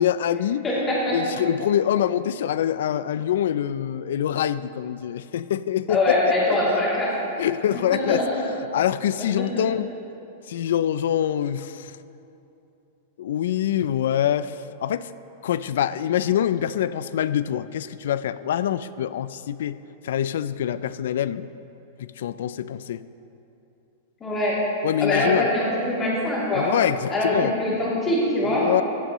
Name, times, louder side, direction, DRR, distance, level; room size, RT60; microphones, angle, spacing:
voice 1, 0.0-0.6 1.1-6.2 6.7-6.8 7.4-8.2 8.7-9.9 10.5-11.9 13.2-14.6 14.8-15.1 15.4-19.8 20.0-21.5 22.0-23.0 24.8-25.5 26.5-27.6 28.4-28.8, left 10 dB, 70° left, 15 dB, 0.3 m, -25 dB
voice 2, 0.6-1.1 5.9-7.1 7.7-7.8 8.1-8.2 9.5-9.6 24.2-24.5 25.0-26.6 27.1-28.7, left 1 dB, 15° left, -8 dB, 2.8 m, -23 dB
14.0 x 11.0 x 3.0 m, 2.8 s
supercardioid pair, 170°, 0 cm